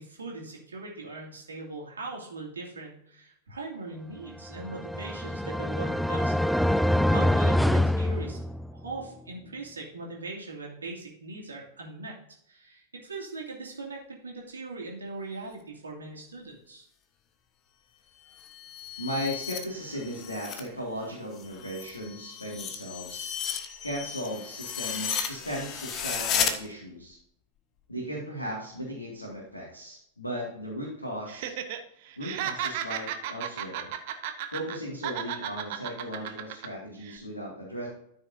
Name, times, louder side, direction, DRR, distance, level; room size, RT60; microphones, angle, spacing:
voice 1, 0.0-6.4 6.7-8.4 8.7-12.1 12.5-16.9, right 3 dB, 75° right, -2 dB, 2.6 m, -40 dB
sound 1, 4.5-8.9, left 1 dB, ahead, 0.3 m, -25 dB
sound 2, 18.3-20.7 21.0-26.5, left 8 dB, 35° left, 1.1 m, -34 dB
voice 2, 19.0-23.4 23.8-27.2 27.9-31.5 32.2-33.9 34.5-37.9, equal, 80° left, -3 dB, 2.1 m, -36 dB
Laughter, 31.3-31.8 32.1-34.8 35.0-36.7 37.0-37.2, right 10 dB, 50° right, 1.0 m, -34 dB
13.0 x 6.3 x 2.7 m, 0.74 s
figure-of-eight pair, 90°, 0 cm